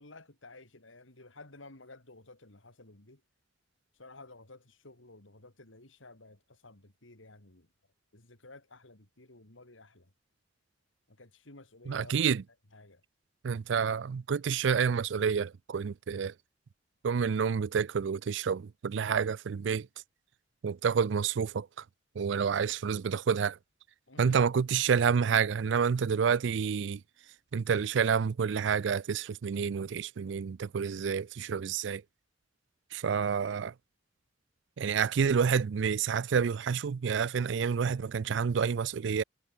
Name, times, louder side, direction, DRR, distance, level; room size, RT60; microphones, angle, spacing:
voice 1, 0.0-3.2 3.9-7.7 8.1-10.1 11.1-12.2 12.7-13.0 24.1-24.4, left 2 dB, 90° left, 3.9 m, -53 dB
voice 2, 11.9-12.4 13.4-16.3 17.0-19.9 20.6-21.7 22.2-23.6 24.2-27.0 27.5-32.0 32.9-33.7 34.8-39.2, right 6 dB, 65° right, 0.4 m, -29 dB
head